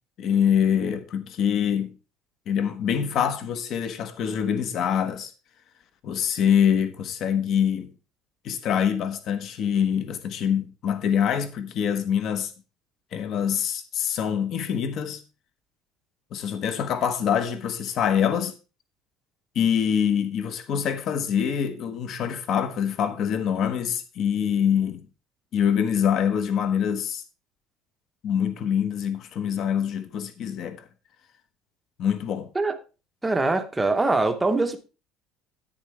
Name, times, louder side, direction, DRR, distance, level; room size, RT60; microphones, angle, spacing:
voice 1, 0.2-2.0 2.5-5.3 6.0-7.9 8.4-12.5 13.1-15.2 16.3-18.6 19.5-25.0 25.5-27.2 28.2-30.8 32.0-32.5, left 8 dB, 40° left, 1.1 m, -25 dB
voice 2, 33.2-34.8, right 3 dB, 10° right, 0.9 m, -23 dB
10.5 x 9.2 x 3.2 m
cardioid pair, 170°, 0 cm